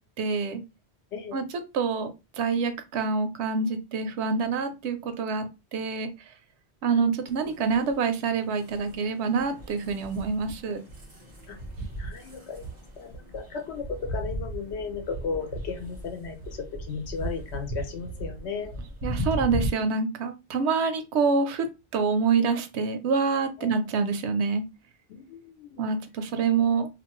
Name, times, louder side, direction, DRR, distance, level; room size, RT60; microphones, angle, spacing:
voice 1, 0.2-0.6 1.3-1.4 1.7-2.1 2.4-5.4 5.7-6.1 6.8-10.8 19.0-21.7 21.9-24.6 25.8-26.9, right 5 dB, 90° right, 8 dB, 0.9 m, -26 dB
sound 1, 7.3-19.7, right 1 dB, 40° right, 1.1 m, -37 dB
voice 2, 12.0-18.7 23.6-23.7 25.1-25.8, left 5 dB, 85° left, 5 dB, 0.9 m, -35 dB
2.6 x 2.5 x 2.9 m, 0.27 s
omnidirectional pair, 1.1 m